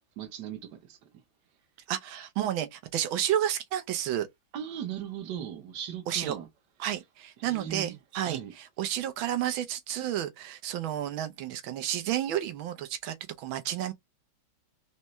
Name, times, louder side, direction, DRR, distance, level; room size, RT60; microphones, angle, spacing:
voice 1, 0.2-1.0 4.5-6.5 7.4-8.0 8.2-8.5, right 9 dB, 60° right, 1.5 m, -38 dB
voice 2, 1.9-4.3 6.1-6.4 6.8-13.9, right 11 dB, 80° right, 1.6 m, -31 dB
4.2 x 3.3 x 3.1 m
omnidirectional pair, 2.2 m